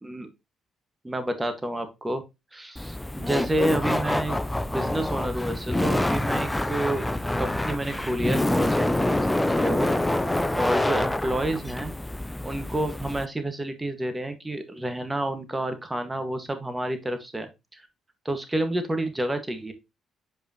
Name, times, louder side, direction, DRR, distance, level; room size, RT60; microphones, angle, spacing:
voice 1, 1.0-2.2 2.5-4.4 4.7-7.1 7.4-9.1 9.5-9.9 10.5-11.9 12.4-17.8 18.2-19.7, right 1 dB, 15° right, 8 dB, 1.7 m, -29 dB
Laughter, 2.8-13.3, left 1 dB, 10° left, 0.5 m, -26 dB
7.7 x 5.2 x 3.0 m, 0.24 s
hypercardioid pair, 55°, 0 cm